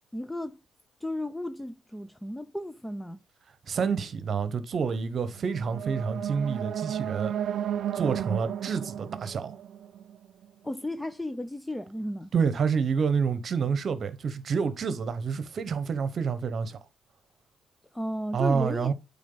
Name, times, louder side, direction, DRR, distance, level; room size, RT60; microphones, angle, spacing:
voice 1, 0.1-0.6 1.0-3.2 10.6-12.3 17.9-18.9, left 1 dB, 5° left, 0.5 m, -34 dB
voice 2, 3.7-7.3 7.9-9.6 12.3-16.8 18.3-18.9, right 6 dB, 50° right, 1.0 m, -28 dB
sound 1, 5.4-10.5, right 10 dB, 70° right, 0.5 m, -33 dB
8.5 x 3.6 x 3.9 m
cardioid pair, 90°, 0 cm